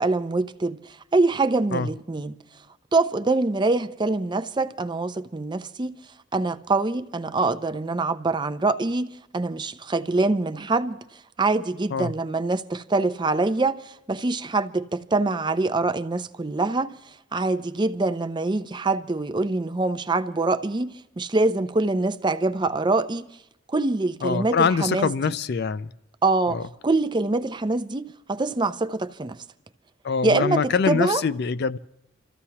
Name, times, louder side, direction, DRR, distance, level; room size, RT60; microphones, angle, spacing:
voice 1, 0.0-2.4 2.9-5.9 6.3-11.0 11.4-16.9 17.3-23.3 23.7-25.1 26.2-29.4 30.2-31.2, right 3 dB, 25° right, 0.5 m, -24 dB
voice 2, 24.2-25.9 26.5-26.7 30.0-31.8, left 5 dB, 55° left, 0.4 m, -24 dB
28.0 x 14.5 x 2.9 m
head